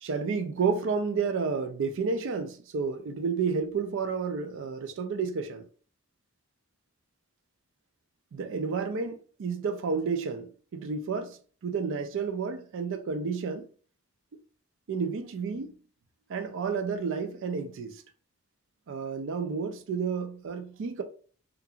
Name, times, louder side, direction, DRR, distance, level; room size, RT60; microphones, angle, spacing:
voice 1, 0.0-5.7 8.3-13.7 14.9-15.7 16.3-18.0 18.9-21.0, right 5 dB, 60° right, 0.4 m, -31 dB
2.8 x 2.5 x 2.4 m
head